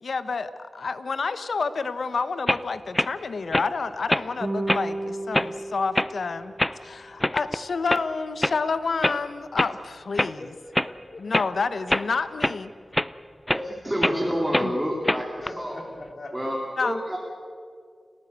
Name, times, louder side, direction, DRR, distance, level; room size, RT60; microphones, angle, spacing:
voice 1, 0.0-10.5 11.2-12.7 14.6-14.7 16.8-17.0, left 4 dB, 75° left, 12 dB, 1.0 m, -29 dB
sound 1, 2.5-2.6 2.9-3.1 3.5-3.7 4.1-4.3 4.7-4.8 5.3-5.5 5.9-6.1 6.6-6.8 7.2-7.6 7.9-8.0 8.4-8.6 9.0-9.2 9.6-9.7 10.2-10.3 10.7-10.9 11.3-11.5 11.9-12.1 12.4-12.6 12.9-13.1 13.5-13.6 14.0-14.2 14.5-14.7 15.0-15.5, left 1 dB, 15° left, 0.5 m, -24 dB
sound 2, 4.4-7.0, right 2 dB, 30° right, 1.4 m, -33 dB
voice 2, 10.4-11.5 15.4-16.5, left 2 dB, 55° left, 3 dB, 3.6 m, -42 dB
voice 3, 13.5-15.8 16.3-17.2, equal, 10° right, -2 dB, 2.9 m, -28 dB
30.0 x 14.0 x 8.2 m, 2.2 s
wide cardioid pair, 95°, 0 cm